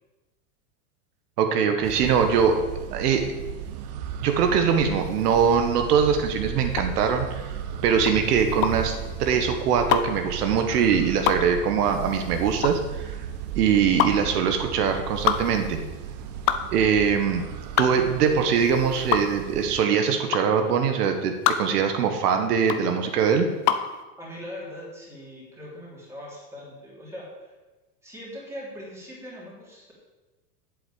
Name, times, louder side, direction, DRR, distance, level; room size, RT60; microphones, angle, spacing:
voice 1, 1.4-2.6 2.9-3.3 4.2-7.5 7.8-13.3 13.5-15.8 16.7-17.5 17.8-23.5, right 7 dB, 75° right, 6 dB, 1.5 m, -22 dB
sound 1, 1.8-19.8, right 8 dB, 30° right, 0.4 m, -35 dB
sound 2, 6.7-23.9, left 11 dB, 30° left, 0.5 m, -27 dB
voice 2, 24.2-27.5 28.0-29.9, equal, 5° right, -5 dB, 3.2 m, -40 dB
8.0 x 7.9 x 8.7 m, 1.2 s
supercardioid pair, 165°, 46 cm